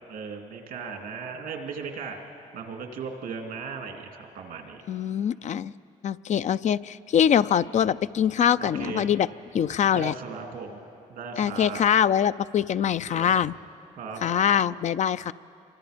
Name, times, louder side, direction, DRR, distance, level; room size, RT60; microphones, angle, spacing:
voice 1, 0.1-2.2 2.5-4.8 8.6-9.1 9.9-10.8 11.1-11.8 13.1-13.5 14.0-14.5, right 5 dB, 85° right, 3 dB, 2.8 m, -37 dB
voice 2, 4.9-5.7 6.0-9.3 9.5-10.1 11.4-13.5 14.2-15.3, left 9 dB, 55° left, 14 dB, 0.4 m, -23 dB
27.5 x 24.0 x 5.2 m, 2.7 s
cardioid pair, 75°, 14 cm